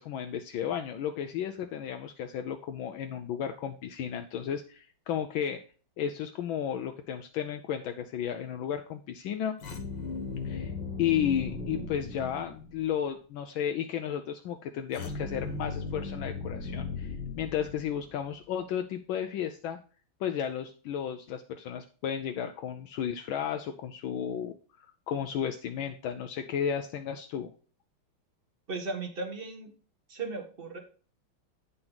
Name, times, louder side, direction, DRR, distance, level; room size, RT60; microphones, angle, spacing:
voice 1, 0.0-5.6 6.0-9.6 10.4-10.7 11.0-19.8 20.2-27.5, left 9 dB, 75° left, 6 dB, 1.4 m, -33 dB
sound 1, 9.6-12.9 14.9-18.2, left 4 dB, 60° left, 2.0 m, -37 dB
voice 2, 28.7-29.7 30.1-30.8, right 3 dB, 30° right, 5 dB, 1.4 m, -36 dB
8.9 x 6.0 x 3.9 m, 0.39 s
omnidirectional pair, 2.2 m